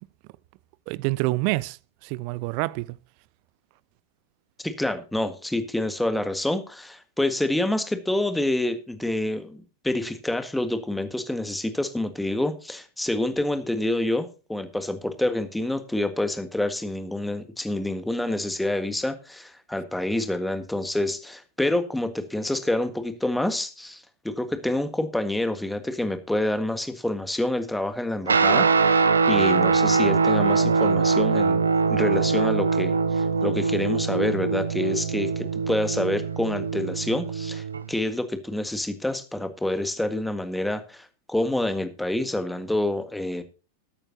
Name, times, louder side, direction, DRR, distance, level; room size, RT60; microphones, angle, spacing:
voice 1, 0.9-3.0, right 21 dB, 45° right, 0.5 m, -27 dB
voice 2, 4.6-31.6 31.9-43.4, left 1 dB, 5° left, 1.6 m, -27 dB
Guitar, 28.3-37.9, right 4 dB, 75° right, 0.8 m, -22 dB
19.5 x 8.9 x 2.8 m
figure-of-eight pair, 90°, 0 cm